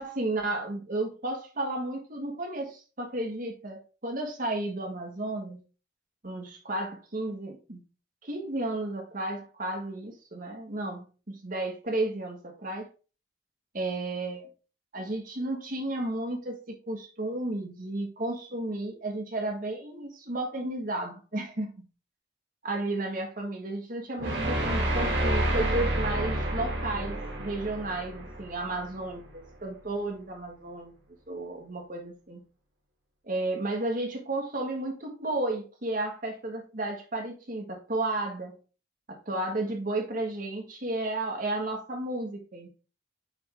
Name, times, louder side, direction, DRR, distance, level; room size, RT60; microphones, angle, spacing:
voice 1, 0.0-5.6 6.2-7.8 8.2-12.9 13.7-14.5 14.9-21.8 22.6-30.9 31.3-32.4 33.3-38.6 39.1-42.7, right 2 dB, 45° right, 1.5 m, -33 dB
sound 1, 24.2-29.3, right 1 dB, 70° right, 2.2 m, -29 dB
8.9 x 3.5 x 3.6 m
head